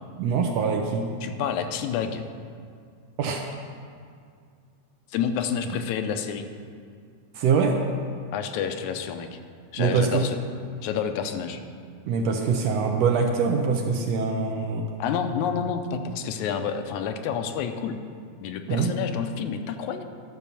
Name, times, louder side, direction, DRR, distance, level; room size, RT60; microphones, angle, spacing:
voice 1, 0.2-1.1 3.2-3.4 7.3-7.8 9.8-10.3 12.0-14.9 18.7-18.9, right 5 dB, 75° right, 3 dB, 1.6 m, -24 dB
voice 2, 1.2-2.2 5.1-6.5 8.3-9.3 9.7-10.4 10.8-11.6 15.0-18.0 18.4-20.0, left 7 dB, 80° left, 7 dB, 2.0 m, -29 dB
12.0 x 5.5 x 6.9 m, 2.2 s
omnidirectional pair, 3.4 m